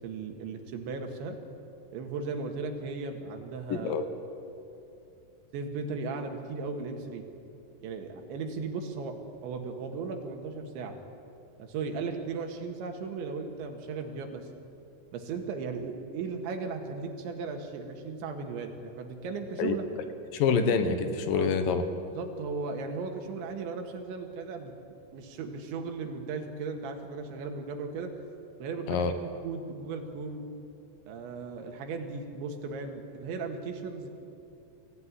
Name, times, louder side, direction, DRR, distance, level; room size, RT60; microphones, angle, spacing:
voice 1, 0.0-1.4 1.9-3.9 5.5-7.3 7.8-9.2 9.4-11.0 11.6-14.5 15.1-20.1 21.3-21.5 22.1-24.7 25.1-28.1 28.6-29.1 29.4-30.4 31.1-34.1, right 4 dB, 85° right, 4 dB, 4.3 m, -36 dB
voice 2, 3.7-4.0 19.6-19.7 20.3-21.8 28.9-29.1, left 5 dB, 65° left, 9 dB, 2.5 m, -26 dB
24.0 x 16.0 x 9.9 m, 2.7 s
omnidirectional pair, 5.1 m